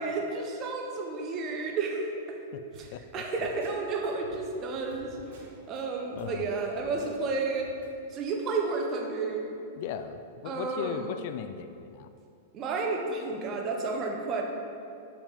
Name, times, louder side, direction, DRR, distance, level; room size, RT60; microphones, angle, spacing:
voice 1, 0.0-2.4 2.8-2.9 3.1-5.2 5.7-7.7 8.1-9.5 10.4-11.1 12.5-14.4, right 3 dB, 35° right, 1 dB, 1.2 m, -31 dB
sound 1, 2.7-5.8 6.1-7.9, right 1 dB, 65° right, 1.7 m, -51 dB
voice 2, 2.9-3.2 6.1-6.5 9.8-12.1, left 9 dB, 55° left, 10 dB, 0.4 m, -37 dB
7.1 x 5.4 x 5.1 m, 2.5 s
hypercardioid pair, 125°, 0 cm